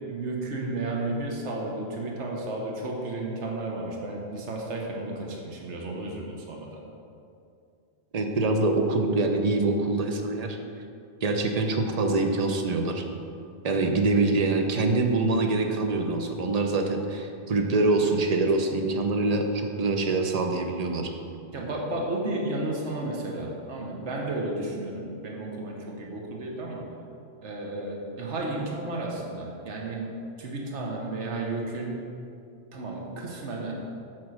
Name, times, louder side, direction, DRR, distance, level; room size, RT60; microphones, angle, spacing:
voice 1, 0.1-6.8 21.5-26.9 27.4-30.1 30.4-32.0 32.7-33.7, right 2 dB, 75° right, -1 dB, 1.4 m, -33 dB
voice 2, 8.1-10.6 11.2-13.0 13.6-21.1, right 3 dB, 40° right, 4 dB, 0.7 m, -25 dB
8.6 x 4.4 x 6.3 m, 2.5 s
omnidirectional pair, 1.2 m